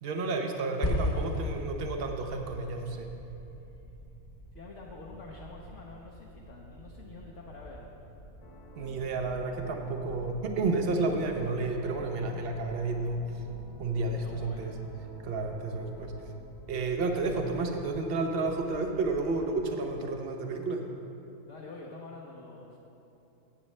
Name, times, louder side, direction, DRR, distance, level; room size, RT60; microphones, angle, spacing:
voice 1, 0.0-3.1 8.8-13.2 13.8-14.7 15.2-16.1 16.7-20.9, right 3 dB, 45° right, 4 dB, 0.9 m, -31 dB
sound 1, 0.8-5.2, left 1 dB, 35° left, 0.9 m, -35 dB
sound 2, 1.6-19.6, right 1 dB, 90° right, 2.4 m, -51 dB
voice 2, 4.5-8.2 14.1-14.8 15.3-15.5 21.5-22.8, left 3 dB, 55° left, -3 dB, 1.2 m, -47 dB
sound 3, 8.4-16.4, left 3 dB, 85° left, 1.6 m, -51 dB
14.5 x 8.4 x 3.2 m, 2.8 s
omnidirectional pair, 1.6 m